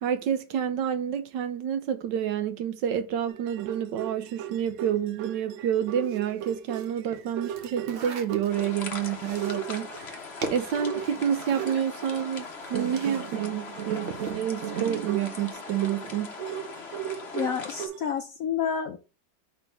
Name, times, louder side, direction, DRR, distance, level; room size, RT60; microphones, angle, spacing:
voice 1, 0.0-10.2 10.5-16.3, right 9 dB, 70° right, 1.2 m, -29 dB
sound 1, 3.3-9.1 9.4-10.2 10.6-12.3 12.7-18.1, right 10 dB, 90° right, 0.7 m, -37 dB
sound 2, 6.0-13.4 13.7-14.5, right 3 dB, 50° right, 0.7 m, -41 dB
sound 3, 8.5-17.9, left 4 dB, 40° left, 1.1 m, -40 dB
voice 2, 17.3-19.0, left 7 dB, 75° left, 0.8 m, -29 dB
5.4 x 4.0 x 5.7 m
omnidirectional pair, 2.1 m